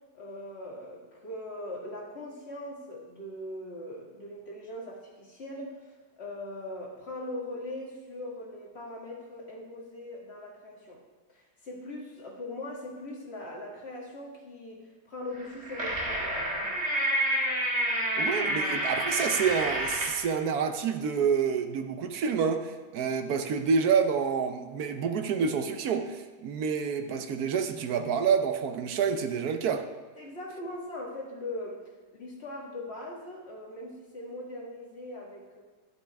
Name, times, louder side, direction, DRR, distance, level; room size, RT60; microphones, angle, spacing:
voice 1, 0.1-5.9 6.2-11.0 11.3-16.4 30.2-35.6, left 1 dB, 35° left, -2 dB, 1.9 m, -40 dB
sound 1, 15.4-20.2, right 1 dB, 35° right, 2.0 m, -29 dB
voice 2, 18.2-29.9, right 6 dB, 70° right, 7 dB, 0.9 m, -28 dB
11.5 x 8.0 x 3.4 m, 1.3 s
omnidirectional pair, 2.2 m